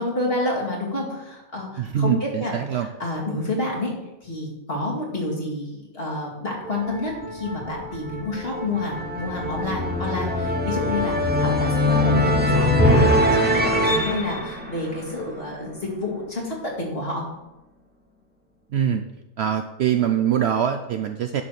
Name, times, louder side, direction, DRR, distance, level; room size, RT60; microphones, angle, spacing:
voice 1, 0.0-3.9 4.2-5.7 5.9-17.3, left 2 dB, 45° left, -3 dB, 2.4 m, -29 dB
voice 2, 1.8-2.9 18.7-19.0 19.4-21.4, right 9 dB, 65° right, 7 dB, 0.7 m, -23 dB
sound 1, 6.6-15.7, left 1 dB, 10° right, 0.9 m, -23 dB
10.5 x 4.2 x 6.4 m, 0.99 s
omnidirectional pair, 1.4 m